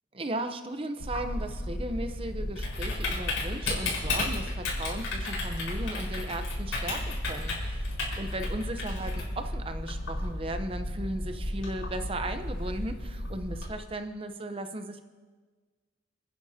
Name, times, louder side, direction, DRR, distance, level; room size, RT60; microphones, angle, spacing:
voice 1, 0.1-15.0, right 1 dB, 30° right, 8 dB, 0.7 m, -36 dB
Typing, 1.0-13.7, left 1 dB, 85° left, 4.6 m, -33 dB
29.5 x 9.9 x 2.8 m, 1.4 s
head